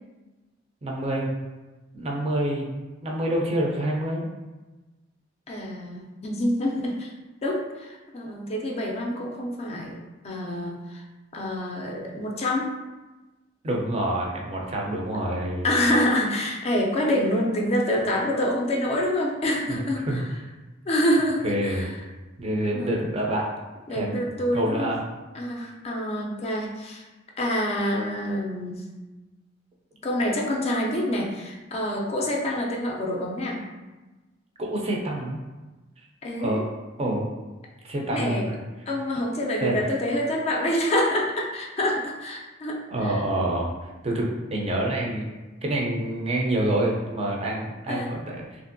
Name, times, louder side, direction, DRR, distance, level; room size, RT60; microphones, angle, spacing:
voice 1, 0.8-1.3 1.9-2.7 3.0-4.3 13.6-15.7 19.7-19.8 20.1-20.2 21.4-21.9 22.4-23.5 23.9-25.0 34.6-35.4 36.0-36.1 36.4-36.6 37.0-37.2 37.8-38.6 39.6-39.9 42.9-43.7 44.0-45.3 45.6-48.4, right 1 dB, 35° right, -1 dB, 0.5 m, -27 dB
voice 2, 5.5-7.1 7.4-11.0 11.3-12.7 15.6-20.2 20.9-22.0 22.8-22.9 23.9-24.9 25.3-27.0 27.4-28.9 30.0-33.6 36.2-36.6 38.1-38.5 38.9-43.2 47.9-48.1, left 1 dB, 35° left, -1 dB, 0.4 m, -26 dB
2.9 x 2.5 x 2.5 m, 1.2 s
head